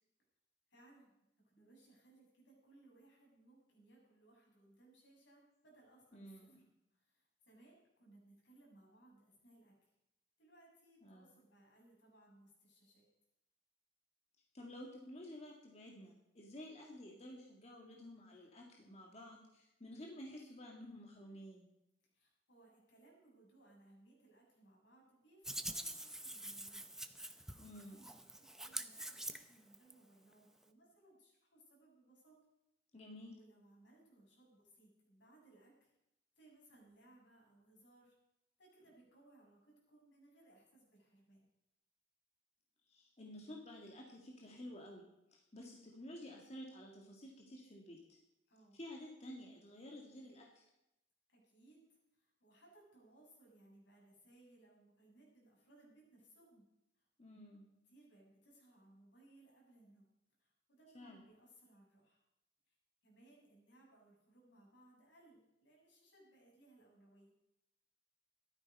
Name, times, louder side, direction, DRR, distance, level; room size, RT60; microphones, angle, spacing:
voice 1, 0.7-1.1 1.4-6.6 6.9-9.7 10.4-13.1 22.1-26.9 27.5-28.1 28.4-32.4 33.4-35.9 36.4-38.1 38.6-41.5 48.5-48.8 51.3-51.8 52.1-56.7 56.9-57.1 57.9-60.1 60.4-62.2 62.7-62.8 63.0-67.3, right 2 dB, 90° left, -3 dB, 7.0 m, -65 dB
voice 2, 6.1-6.6 11.0-11.3 14.5-21.7 27.6-28.0 32.9-33.4 42.9-45.0 45.3-48.2 48.7-50.6 57.2-57.6 60.9-61.2, left 1 dB, 35° left, -1 dB, 2.0 m, -52 dB
Hands, 25.4-29.9, right 1 dB, 5° right, 0.6 m, -46 dB
14.0 x 12.5 x 5.4 m, 0.87 s
head